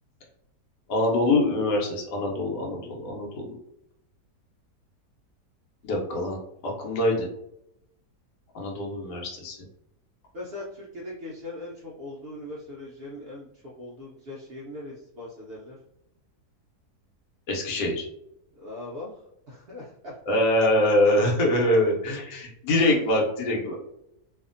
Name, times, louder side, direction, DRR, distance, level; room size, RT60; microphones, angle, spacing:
voice 1, 0.9-3.5 5.8-6.4 6.6-7.3 8.5-9.6 17.5-18.1 20.3-23.8, left 1 dB, 85° left, -1 dB, 1.3 m, -24 dB
voice 2, 10.3-15.8 18.6-20.2 21.5-21.6, left 2 dB, 85° right, -5 dB, 0.5 m, -40 dB
2.7 x 2.4 x 2.5 m, 0.80 s
omnidirectional pair, 1.8 m